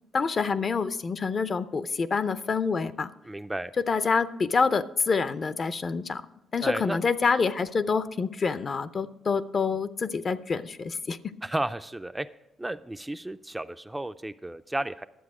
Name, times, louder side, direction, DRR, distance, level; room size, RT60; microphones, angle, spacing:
voice 1, 0.1-3.1 3.8-6.2 6.5-11.2, left 5 dB, 40° left, 14 dB, 0.5 m, -27 dB
voice 2, 3.2-3.7 6.6-7.0 11.4-12.3 12.6-15.0, right 1 dB, 10° right, 10 dB, 0.3 m, -33 dB
11.5 x 7.7 x 4.8 m, 0.95 s
cardioid pair, 90°, 0 cm